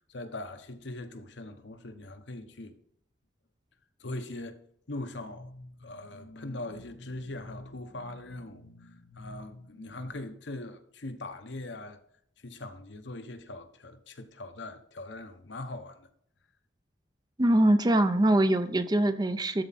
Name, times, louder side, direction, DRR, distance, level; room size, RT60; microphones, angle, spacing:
voice 1, 0.1-2.8 4.0-4.6 4.9-12.0 12.4-16.1, left 2 dB, 70° left, 1.0 m, -41 dB
voice 2, 17.4-19.6, right 1 dB, 20° right, 0.5 m, -23 dB
13.0 x 4.6 x 4.2 m
head